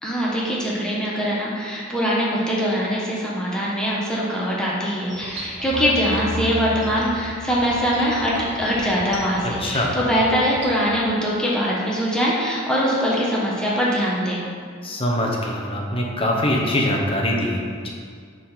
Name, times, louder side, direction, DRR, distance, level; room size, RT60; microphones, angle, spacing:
voice 1, 0.0-8.3 8.6-14.4, equal, 5° left, -6 dB, 1.1 m, -22 dB
sound 1, 5.1-10.9, equal, 65° right, 1.2 m, -33 dB
voice 2, 9.4-9.9 14.8-17.9, left 1 dB, 30° left, -1 dB, 1.0 m, -23 dB
7.3 x 3.9 x 5.7 m, 2.1 s
head